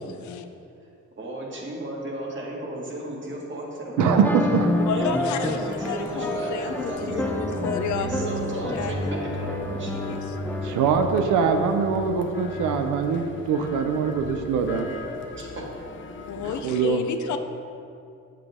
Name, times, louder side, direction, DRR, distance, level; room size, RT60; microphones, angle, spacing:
voice 1, 1.2-4.0 4.9-9.9 15.3-15.7, right 1 dB, 40° right, -3 dB, 2.1 m, -34 dB
sound 1, 4.0-10.9, left 1 dB, 5° left, 0.5 m, -29 dB
voice 2, 4.0-4.7 10.6-14.9 16.4-17.0, right 6 dB, 90° right, 6 dB, 0.7 m, -23 dB
sound 2, 4.5-16.7, left 4 dB, 40° left, 0.8 m, -41 dB
voice 3, 4.9-5.6 5.9-9.1 9.9-10.4 16.3-17.4, left 7 dB, 75° left, 8 dB, 0.7 m, -31 dB
sound 3, 6.9-14.2, right 1 dB, 60° right, 1.5 m, -35 dB
8.1 x 7.5 x 3.6 m, 2.6 s
cardioid pair, 90°, 30 cm